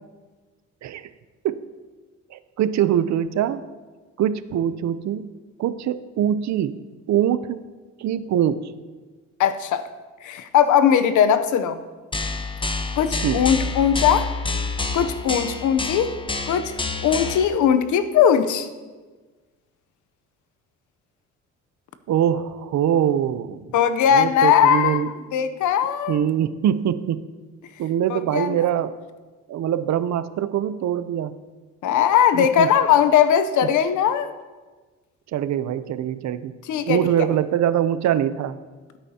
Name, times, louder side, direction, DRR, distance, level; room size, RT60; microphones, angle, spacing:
voice 1, 2.3-3.6 4.2-5.3 5.6-6.7 7.1-7.6 8.0-8.7 13.2-13.5 22.1-23.6 24.1-25.1 26.1-27.2 27.8-29.0 29.5-31.4 32.3-32.7 35.3-36.5 36.8-38.6, right 10 dB, 65° right, 13 dB, 0.6 m, -23 dB
voice 2, 9.4-9.8 10.2-11.8 13.0-14.3 14.9-16.1 16.5-16.7 17.0-18.7 23.7-26.2 28.1-28.6 31.8-34.3 36.7-37.0, left 8 dB, 80° left, 11 dB, 0.8 m, -19 dB
sound 1, 12.1-17.5, left 3 dB, 15° left, 0.8 m, -28 dB
16.0 x 8.9 x 2.8 m, 1.3 s
cardioid pair, 90°, 30 cm